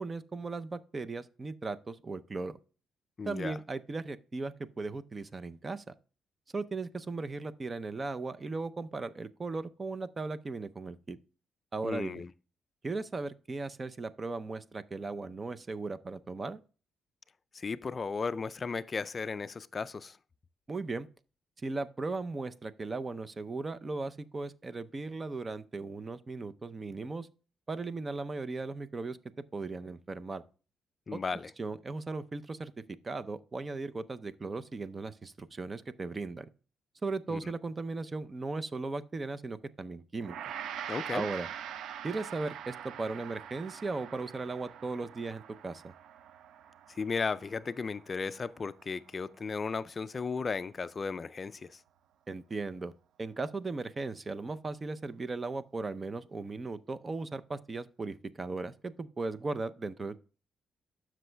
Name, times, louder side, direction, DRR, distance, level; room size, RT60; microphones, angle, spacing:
voice 1, 0.0-2.6 3.2-5.8 6.5-11.2 11.7-12.2 12.8-16.6 20.7-21.1 21.6-27.3 27.7-29.2 29.5-30.4 31.1-31.2 31.6-32.7 33.0-36.5 37.0-40.4 41.1-41.5 42.0-45.9 52.3-52.9 53.2-60.2, right 3 dB, 30° right, 0.5 m, -37 dB
voice 2, 3.2-3.6 11.8-12.3 17.5-20.2 31.1-31.5 37.3-37.5 40.9-41.3 46.9-51.8, left 5 dB, 35° left, 0.3 m, -35 dB
Gong, 40.2-49.6, right 9 dB, 75° right, 0.4 m, -44 dB
12.5 x 6.1 x 2.2 m
cardioid pair, 90°, 0 cm